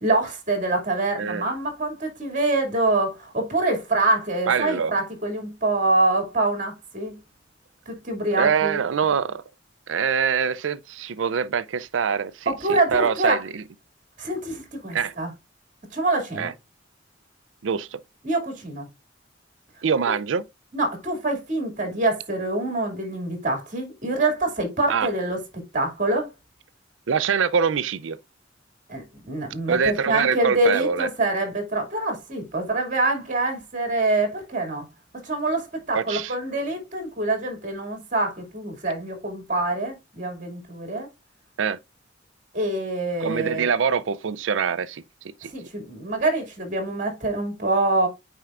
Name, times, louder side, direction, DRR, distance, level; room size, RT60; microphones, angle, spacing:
voice 1, 0.0-7.2 7.9-8.8 12.5-13.4 14.2-15.3 15.9-16.5 18.2-18.9 20.7-26.3 28.9-34.9 35.1-41.1 42.5-43.7 45.5-48.1, right 2 dB, 40° right, 2.5 m, -25 dB
voice 2, 4.5-5.0 8.4-9.4 9.9-13.6 14.9-15.1 16.4-16.5 17.6-18.0 19.8-20.4 24.9-25.1 27.1-28.2 29.7-31.1 35.9-36.3 41.6-41.8 43.2-45.0 45.4-45.5, right 6 dB, 85° right, 0.5 m, -24 dB
9.0 x 4.5 x 2.5 m
head